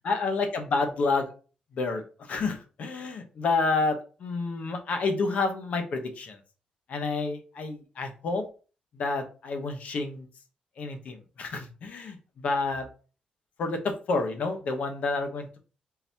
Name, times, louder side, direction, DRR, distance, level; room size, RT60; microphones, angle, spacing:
voice 1, 0.0-1.3 1.7-2.0 2.3-6.4 6.9-8.4 8.9-10.3 10.8-12.9 13.6-15.6, left 3 dB, 60° left, 5 dB, 0.9 m, -29 dB
4.2 x 3.9 x 2.8 m, 0.36 s
cardioid pair, 140°, 3 cm